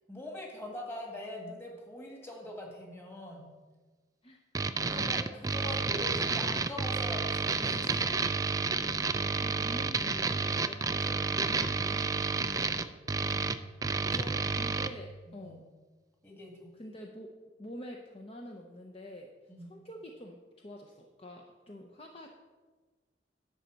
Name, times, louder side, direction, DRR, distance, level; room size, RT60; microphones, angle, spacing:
voice 1, 0.1-3.5 4.8-8.3 14.0-14.3 15.3-15.6 16.2-16.7 19.5-19.8, left 1 dB, 15° left, -1 dB, 1.7 m, -43 dB
voice 2, 4.2-5.8 9.0-13.0 14.3-15.6 16.8-17.3 17.6-19.3 19.6-22.4, left 1 dB, 35° left, 1 dB, 0.7 m, -47 dB
sound 1, 4.5-14.9, right 4 dB, 20° right, 0.3 m, -30 dB
11.0 x 4.0 x 7.6 m, 1.4 s
head